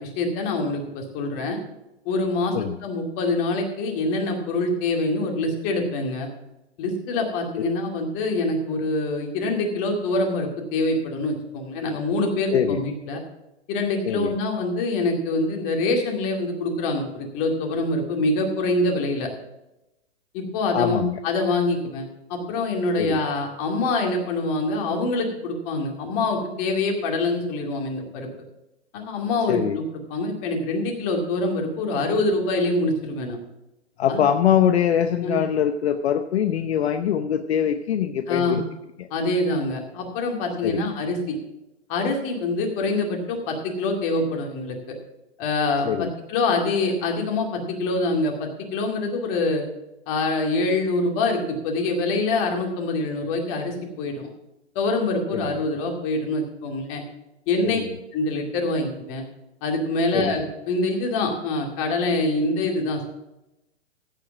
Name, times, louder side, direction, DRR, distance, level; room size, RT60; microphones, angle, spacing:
voice 1, 0.0-1.6 2.1-2.6 2.8-6.3 6.8-13.2 13.7-19.3 20.3-28.3 28.9-29.8 30.1-33.4 34.1-34.2 35.2-35.4 38.3-38.6 39.1-41.4 41.9-45.0 45.4-49.6 50.1-54.3 54.8-57.0 57.5-57.8 58.1-59.2 59.6-63.1, left 2 dB, 30° left, 2 dB, 2.2 m, -25 dB
voice 2, 12.5-12.8 14.0-14.4 20.7-21.2 23.0-23.2 29.5-29.8 34.0-38.6 39.0-39.1 40.6-40.9 45.8-46.1 55.3-55.6 57.6-58.0 60.1-60.3, left 9 dB, 65° left, 8 dB, 0.8 m, -23 dB
15.0 x 5.1 x 7.2 m, 0.94 s
hypercardioid pair, 145°, 35 cm